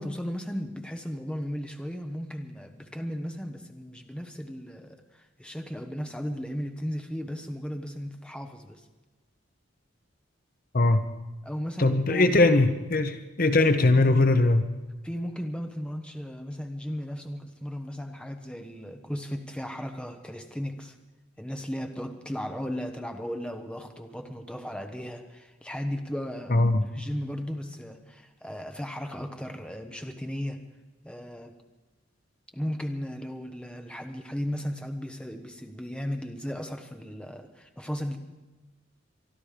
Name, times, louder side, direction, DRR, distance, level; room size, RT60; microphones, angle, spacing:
voice 1, 0.0-8.8 11.4-12.4 13.7-14.5 15.0-20.9 21.4-30.6 31.0-31.5 32.5-38.2, equal, 5° left, 5 dB, 1.0 m, -35 dB
voice 2, 11.8-14.6 26.5-26.8, left 2 dB, 45° left, 8 dB, 0.9 m, -21 dB
24.0 x 12.0 x 5.0 m, 1.1 s
head